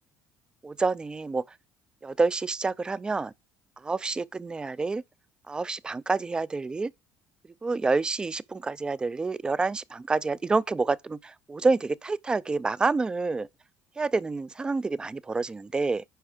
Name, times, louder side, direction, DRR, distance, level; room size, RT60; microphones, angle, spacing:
voice 1, 0.6-1.4 2.0-3.3 3.8-5.0 5.5-6.9 7.6-13.5 14.0-16.0, right 3 dB, 15° right, 0.4 m, -28 dB
10.0 x 4.6 x 4.9 m
cardioid pair, 125°, 5 cm